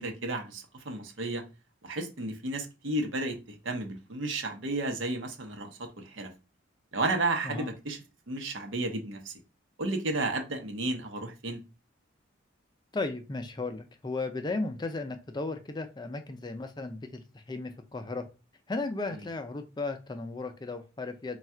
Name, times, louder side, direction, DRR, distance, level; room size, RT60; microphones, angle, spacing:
voice 1, 0.0-1.4 1.8-6.3 6.9-8.0 8.3-9.3 9.8-11.6, right 2 dB, 75° right, 0.8 m, -32 dB
voice 2, 12.9-18.3 18.7-21.4, left 3 dB, 20° left, 0.4 m, -35 dB
3.5 x 2.4 x 4.3 m
head